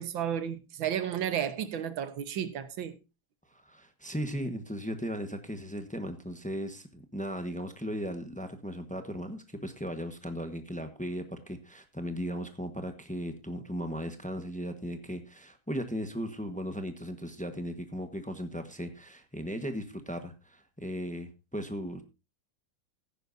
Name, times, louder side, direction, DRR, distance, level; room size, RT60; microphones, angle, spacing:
voice 1, 0.0-3.0, right 9 dB, 70° right, 1.7 m, -32 dB
voice 2, 3.5-22.0, equal, 5° left, 0.7 m, -37 dB
16.0 x 10.0 x 2.6 m
omnidirectional pair, 2.3 m